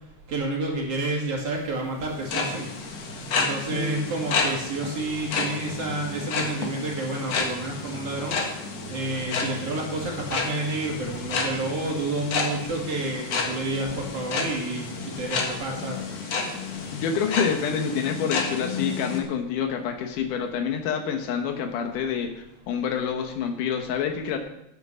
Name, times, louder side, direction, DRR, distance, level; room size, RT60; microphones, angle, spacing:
voice 1, 0.3-2.7 3.4-8.4 8.9-16.0, right 2 dB, 50° right, -1 dB, 3.1 m, -30 dB
sound 1, 2.1-19.2, left 4 dB, 60° left, 2.5 m, -31 dB
voice 2, 3.7-4.1 16.9-24.4, left 7 dB, 85° left, 5 dB, 2.6 m, -27 dB
9.6 x 9.2 x 6.1 m, 0.81 s
omnidirectional pair, 3.6 m